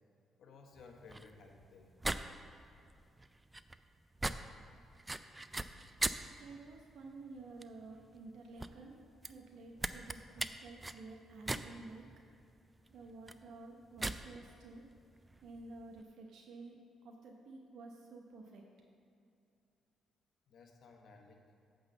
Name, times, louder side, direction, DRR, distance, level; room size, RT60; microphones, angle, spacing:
voice 1, 0.4-2.0 20.5-21.4, left 4 dB, 65° left, 2 dB, 1.1 m, -57 dB
sound 1, 0.8-16.0, right 2 dB, 15° right, 0.3 m, -43 dB
voice 2, 6.3-9.0 9.3-12.1 12.9-14.8 15.4-16.8 17.0-18.6, right 3 dB, 75° right, 1 dB, 0.8 m, -51 dB
8.8 x 4.0 x 6.9 m, 2.5 s
cardioid pair, 90°, 0 cm